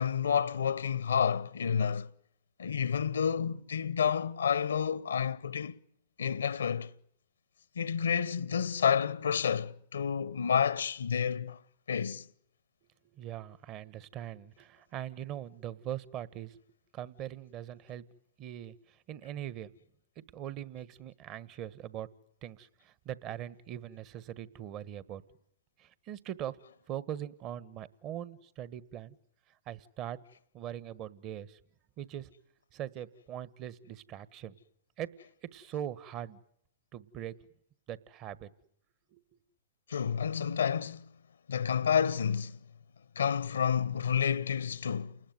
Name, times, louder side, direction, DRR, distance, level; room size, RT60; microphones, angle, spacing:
voice 1, 0.0-2.1 2.6-5.8 6.2-6.9 7.7-11.6 11.9-12.3 39.9-41.1 41.5-42.6 43.1-45.2, left 7 dB, 85° left, 1.0 m, -30 dB
voice 2, 13.1-16.6 16.9-18.0 18.4-19.7 20.2-22.1 22.4-25.2 25.8-26.6 26.9-29.2 29.7-30.2 30.5-31.6 32.0-32.3 32.7-34.5 35.0-35.1 35.5-36.4 36.9-37.3 37.9-38.5 39.1-39.4, right 11 dB, 35° right, 1.4 m, -41 dB
29.0 x 20.0 x 9.4 m
hypercardioid pair, 120°, 0 cm